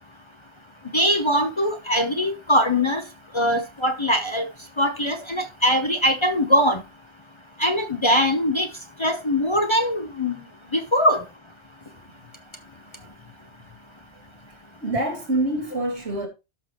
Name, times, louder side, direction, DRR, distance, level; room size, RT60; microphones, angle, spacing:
voice 1, 0.9-3.0 3.3-4.4 4.8-6.8 7.6-8.7 9.0-10.4 10.7-11.2, equal, 30° left, 0.8 m, -21 dB
voice 2, 14.8-16.3, right 2 dB, 75° right, 3.1 m, -25 dB
12.0 x 6.1 x 3.0 m
omnidirectional pair, 1.1 m